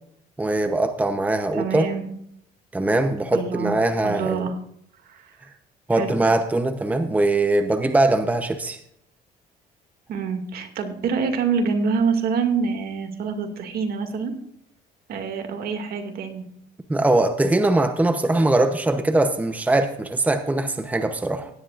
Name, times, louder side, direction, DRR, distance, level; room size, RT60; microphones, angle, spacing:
voice 1, 0.4-1.9 2.7-4.5 5.9-8.8 16.9-21.5, right 2 dB, 10° right, 0.9 m, -21 dB
voice 2, 1.5-2.0 3.3-3.8 4.0-4.6 5.0-5.3 5.9-6.1 10.1-14.3 15.1-16.4, right 5 dB, 65° right, 2.3 m, -26 dB
17.0 x 11.0 x 2.5 m
cardioid pair, 110°, 17 cm